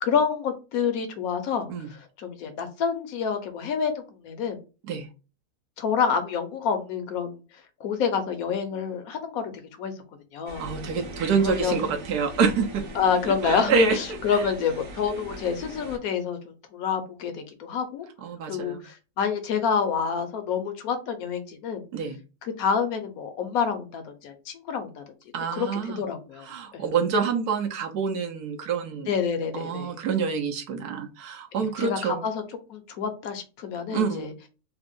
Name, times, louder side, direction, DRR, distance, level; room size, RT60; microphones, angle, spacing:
voice 1, 0.0-4.6 5.8-7.4 7.8-9.5 9.8-9.9 10.3-10.6 11.4-11.8 12.9-18.1 18.5-21.8 22.4-25.0 25.5-26.8 29.1-29.9 31.5-32.4 32.7-34.3, left 6 dB, 70° left, 7 dB, 1.1 m, -28 dB
sound 1, 10.5-16.0, right 1 dB, 55° right, 1.1 m, -40 dB
voice 2, 10.6-12.8 13.4-14.4 18.2-18.8 21.9-22.2 25.3-26.0 26.5-29.1 29.5-32.3 33.9-34.3, right 5 dB, 80° right, 4 dB, 1.2 m, -27 dB
3.4 x 2.0 x 3.5 m, 0.32 s
omnidirectional pair, 1.6 m